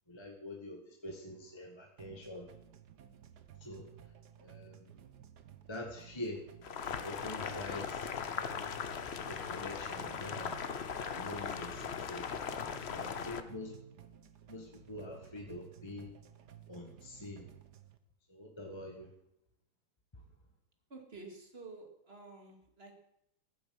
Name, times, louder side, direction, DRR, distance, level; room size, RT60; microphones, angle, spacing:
voice 1, 0.1-2.5 3.6-3.9 4.4-5.0 5.7-6.4 7.0-8.1 8.4-9.0 9.3-10.6 11.1-12.3 12.9-13.8 14.5-16.1 16.7-17.5 18.3-19.1 20.1-20.2, left 1 dB, 15° left, 1 dB, 1.4 m, -45 dB
sound 1, 2.0-18.0, right 9 dB, 55° right, 1.4 m, -56 dB
Boiling, 6.6-13.4, left 7 dB, 85° left, 0.5 m, -39 dB
voice 2, 20.9-23.0, right 3 dB, 25° right, 3 dB, 2.5 m, -50 dB
14.5 x 8.6 x 7.8 m, 0.80 s
omnidirectional pair, 2.4 m